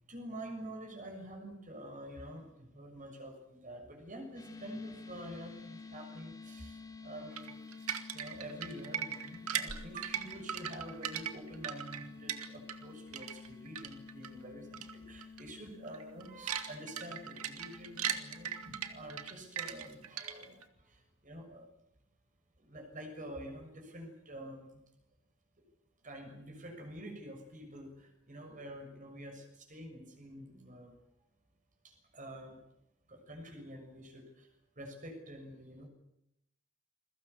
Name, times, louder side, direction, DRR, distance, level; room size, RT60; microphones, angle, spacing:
voice 1, 0.1-7.6 8.1-21.7 22.6-24.8 25.6-25.7 26.0-30.9 31.8-32.6 33.1-34.5 34.7-35.9, right 1 dB, 35° right, 4 dB, 6.6 m, -47 dB
sound 1, 4.3-19.9, left 4 dB, 15° left, 5.4 m, -51 dB
sound 2, 7.4-12.9 13.1-14.3 14.7-14.9 15.2-15.4 15.8-20.6, right 9 dB, 75° right, 2.2 m, -39 dB
29.5 x 22.5 x 6.9 m, 0.83 s
head